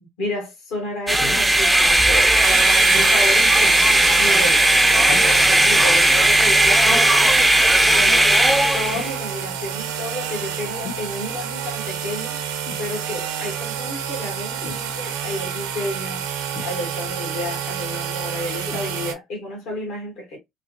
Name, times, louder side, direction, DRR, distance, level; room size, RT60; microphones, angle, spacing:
voice 1, 0.2-2.5 2.8-3.8 4.2-7.1 7.9-8.4 8.7-12.4 12.8-16.3 16.6-20.4, left 1 dB, 70° left, 1.5 m, -31 dB
sound 1, 1.1-9.1, right 1 dB, 15° right, 0.4 m, -16 dB
sound 2, 1.2-1.5 2.9-3.2 5.1-5.5 6.9-7.2 8.9-9.2 10.8-11.1 12.7-12.9 14.6-14.9 16.5-17.1 18.7-18.9 19.7-19.8, left 5 dB, 50° left, 0.9 m, -36 dB
sound 3, 2.4-19.1, right 8 dB, 75° right, 0.5 m, -29 dB
3.3 x 2.5 x 2.3 m
hypercardioid pair, 55°, 0 cm